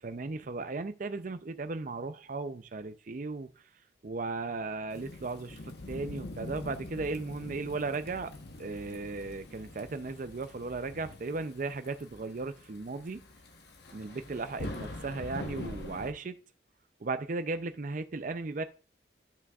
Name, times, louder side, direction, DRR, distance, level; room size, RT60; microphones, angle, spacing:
voice 1, 0.0-3.5 4.0-8.3 8.6-13.3 13.9-16.4 17.0-18.6, right 3 dB, 45° right, 0.5 m, -36 dB
Thunderstorm / Rain, 4.9-16.1, left 1 dB, 60° left, 1.1 m, -44 dB
12.0 x 6.1 x 2.4 m
head